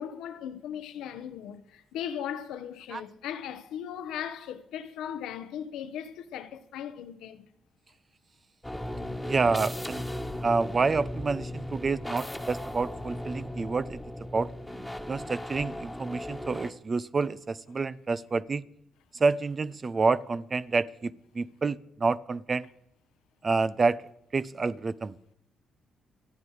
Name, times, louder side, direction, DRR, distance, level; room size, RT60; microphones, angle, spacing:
voice 1, 0.0-7.5 9.1-9.2, left 9 dB, 90° left, 1.2 m, -38 dB
sound 1, 8.6-16.7, left 1 dB, 5° left, 1.7 m, -37 dB
voice 2, 9.2-10.0 10.4-14.0 14.3-14.5 15.1-18.6 19.2-22.7 23.4-24.0 24.3-25.2, right 4 dB, 35° right, 0.7 m, -28 dB
26.0 x 9.3 x 5.0 m
cardioid pair, 90°, 0 cm